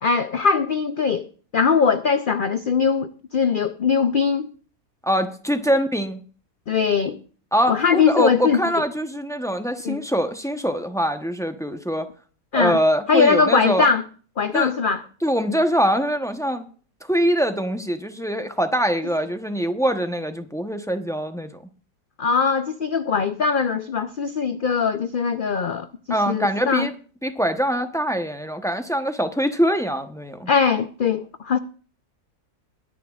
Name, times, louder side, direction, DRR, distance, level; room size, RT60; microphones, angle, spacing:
voice 1, 0.0-1.3 1.5-4.5 6.7-7.2 7.7-8.6 9.8-10.0 12.5-12.8 13.1-14.0 14.4-15.0 22.2-25.9 26.3-26.9 30.5-31.6, left 5 dB, 65° left, 0.5 m, -21 dB
voice 2, 5.0-6.2 7.5-12.1 12.5-13.9 14.5-14.7 15.2-16.7 17.1-21.5 26.1-26.9 27.2-30.5, equal, 5° left, 0.6 m, -23 dB
22.5 x 10.0 x 2.4 m
omnidirectional pair, 1.7 m